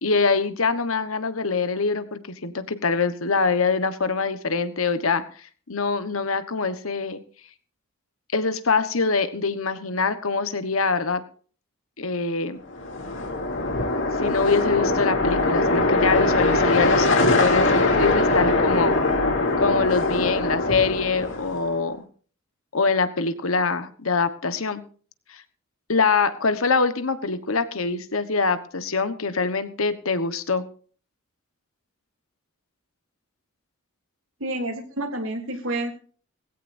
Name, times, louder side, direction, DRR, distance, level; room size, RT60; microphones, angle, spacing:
voice 1, 0.0-7.2 8.3-11.2 12.0-12.6 14.2-18.9 19.6-22.0 22.7-24.8 25.3-25.4 25.9-30.6, left 4 dB, 80° left, 11 dB, 1.3 m, -24 dB
sound 1, 12.7-21.8, left 2 dB, 60° left, 2.9 m, -22 dB
voice 2, 34.4-35.9, right 1 dB, 75° right, 4 dB, 3.1 m, -29 dB
18.0 x 16.0 x 2.7 m, 0.43 s
head